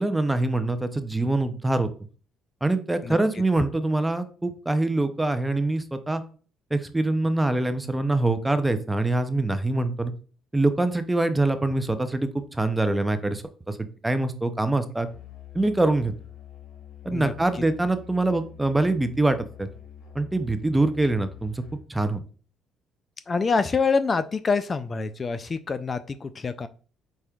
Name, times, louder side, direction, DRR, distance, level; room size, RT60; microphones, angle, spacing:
voice 1, 0.0-1.9 2.6-6.2 6.7-10.1 10.5-13.8 14.0-15.1 15.5-16.1 17.0-19.7 20.1-21.6 21.9-22.2, right 2 dB, 10° right, 10 dB, 0.6 m, -24 dB
voice 2, 3.0-3.4 17.1-17.6 23.3-26.7, left 4 dB, 35° left, 12 dB, 0.3 m, -26 dB
Musical instrument, 15.0-21.9, left 9 dB, 80° left, 1.6 m, -46 dB
4.8 x 4.2 x 2.3 m, 0.39 s
cardioid pair, 85°, 0 cm